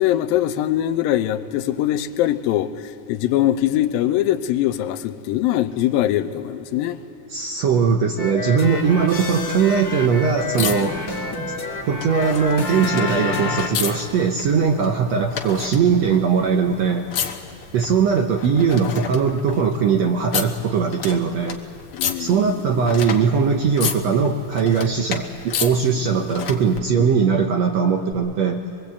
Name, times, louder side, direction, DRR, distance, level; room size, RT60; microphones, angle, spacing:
voice 1, 0.0-2.7 3.1-7.0 21.9-22.4 22.7-22.8 26.9-27.0, left 12 dB, 85° left, 2.5 m, -22 dB
voice 2, 7.3-11.0 11.9-17.1 17.7-21.6 22.2-28.6, right 6 dB, 75° right, 1.6 m, -20 dB
sound 1, 8.2-13.7, left 3 dB, 30° left, 1.9 m, -28 dB
sound 2, 8.6-26.8 28.1-28.2, left 7 dB, 60° left, 1.4 m, -33 dB
22.5 x 22.5 x 8.3 m
omnidirectional pair, 4.0 m